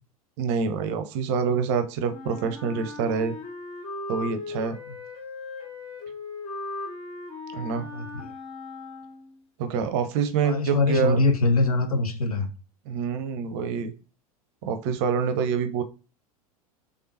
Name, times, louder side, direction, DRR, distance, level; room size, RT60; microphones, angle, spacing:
voice 1, 0.4-3.4 4.1-4.8 7.5-7.9 9.6-11.2 12.9-13.9 14.6-15.8, right 6 dB, 50° right, 0.6 m, -26 dB
Wind instrument woodwind instrument, 2.1-9.4, left 3 dB, 30° left, 1.1 m, -38 dB
voice 2, 7.8-8.3 10.4-12.5, left 3 dB, 80° left, 0.7 m, -24 dB
3.5 x 3.5 x 2.8 m
figure-of-eight pair, 85°, 19 cm